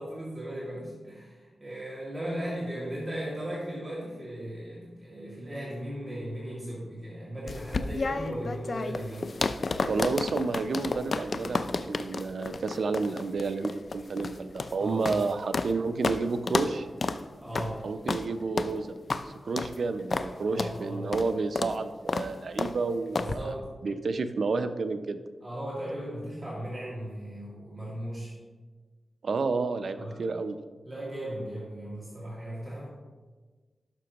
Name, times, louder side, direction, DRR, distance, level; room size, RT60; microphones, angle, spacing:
voice 1, 0.0-9.3 14.8-15.2 17.4-17.8 20.4-21.1 23.1-23.9 25.4-28.3 29.9-30.2 30.8-32.9, right 1 dB, 20° right, -8 dB, 2.1 m, -37 dB
sound 1, 7.5-15.7 16.0-16.2 16.5-16.7 17.0-17.2 17.5-17.7 18.1-18.2 18.6-18.7 19.1-19.2 19.6-19.7 20.1-20.3 20.6-20.7 21.1-21.3 21.6-21.7 22.1-22.3 22.6-22.7 23.1-23.3, left 3 dB, 50° left, 0.4 m, -31 dB
voice 2, 9.8-16.9 17.8-18.9 19.4-23.4 23.8-25.2 29.2-30.6, right 4 dB, 70° right, 9 dB, 0.5 m, -30 dB
11.5 x 6.0 x 2.9 m, 1.3 s
wide cardioid pair, 120°, 0 cm